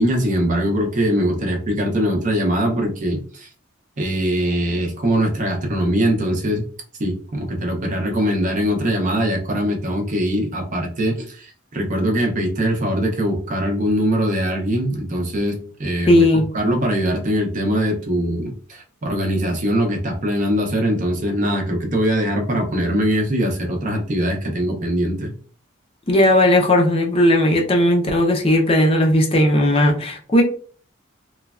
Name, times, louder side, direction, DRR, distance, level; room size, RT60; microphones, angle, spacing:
voice 1, 0.0-3.5 4.0-6.6 7.0-25.3, equal, 35° right, 2 dB, 0.5 m, -22 dB
voice 2, 16.1-16.5 26.1-30.4, left 1 dB, 25° left, 1 dB, 0.4 m, -16 dB
3.1 x 2.2 x 2.3 m, 0.43 s
head